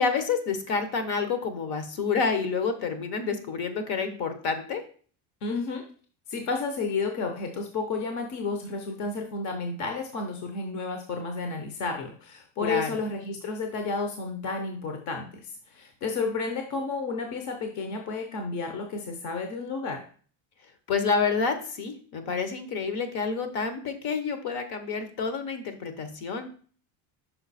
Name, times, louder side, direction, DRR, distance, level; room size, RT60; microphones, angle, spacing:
voice 1, 0.0-4.8 12.6-13.0 20.9-26.5, left 5 dB, 60° left, 9 dB, 1.2 m, -28 dB
voice 2, 5.4-5.8 6.3-20.1, left 4 dB, 40° left, 4 dB, 0.8 m, -32 dB
5.8 x 4.8 x 4.1 m, 0.44 s
cardioid pair, 160°, 44 cm